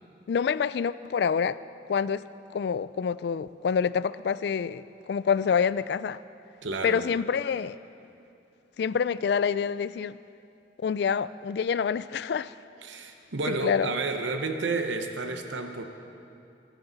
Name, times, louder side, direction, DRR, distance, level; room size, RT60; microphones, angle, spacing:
voice 1, 0.3-1.6 1.9-2.2 2.5-6.2 6.8-7.8 8.8-10.2 10.8-12.5 13.5-13.9, left 6 dB, 65° left, 17 dB, 0.3 m, -27 dB
voice 2, 6.6-7.1 12.8-15.8, right 3 dB, 85° right, 6 dB, 0.9 m, -31 dB
20.5 x 11.5 x 4.0 m, 2.6 s
head